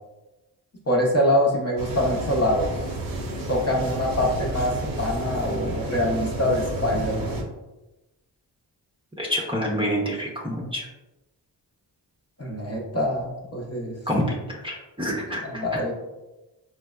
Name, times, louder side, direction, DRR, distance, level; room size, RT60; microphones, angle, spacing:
voice 1, 0.9-2.8 3.5-7.4 12.4-13.9 15.5-15.9, left 1 dB, 35° left, -1 dB, 0.8 m, -24 dB
sound 1, 1.8-7.4, right 1 dB, 50° right, 0.8 m, -31 dB
voice 2, 9.2-10.9 14.1-15.8, equal, 10° right, -3 dB, 0.8 m, -27 dB
4.2 x 2.0 x 2.3 m, 1.0 s
cardioid pair, 50°, 43 cm